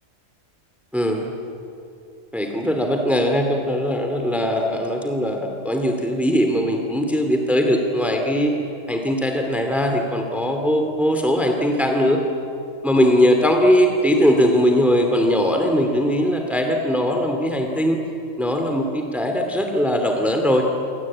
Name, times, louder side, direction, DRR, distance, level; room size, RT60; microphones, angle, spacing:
voice 1, 0.9-1.3 2.3-8.5 8.9-12.2 12.8-18.0 18.4-20.7, equal, ahead, 3 dB, 2.5 m, -20 dB
28.0 x 24.5 x 8.7 m, 2.6 s
omnidirectional pair, 1.4 m